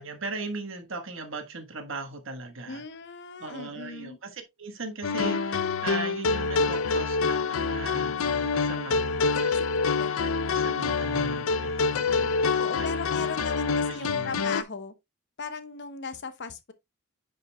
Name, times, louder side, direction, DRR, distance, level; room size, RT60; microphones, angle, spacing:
voice 1, 0.0-2.8 3.4-9.7 10.2-12.9 13.1-14.4, right 3 dB, 65° right, 1.4 m, -39 dB
voice 2, 2.7-4.2 10.0-10.1 12.6-14.9 15.4-16.7, left 4 dB, 60° left, 0.9 m, -37 dB
sound 1, 5.0-14.6, left 4 dB, 75° left, 0.5 m, -26 dB
9.7 x 5.3 x 2.2 m
head